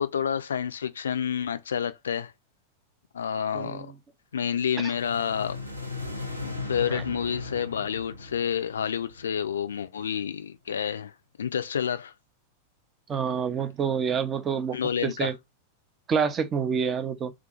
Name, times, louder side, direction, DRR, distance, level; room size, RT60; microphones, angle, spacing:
voice 1, 0.0-2.3 3.1-3.9 4.3-5.7 6.4-11.1 11.4-12.1 14.7-15.3, left 8 dB, 65° left, 0.3 m, -29 dB
voice 2, 3.5-3.9 4.8-4.9 6.9-7.0 13.1-14.8 15.0-15.3 16.1-17.3, right 6 dB, 25° right, 0.5 m, -27 dB
sound 1, 4.7-9.9, left 3 dB, 90° right, 0.6 m, -37 dB
2.5 x 2.4 x 3.8 m
figure-of-eight pair, 90°, 0 cm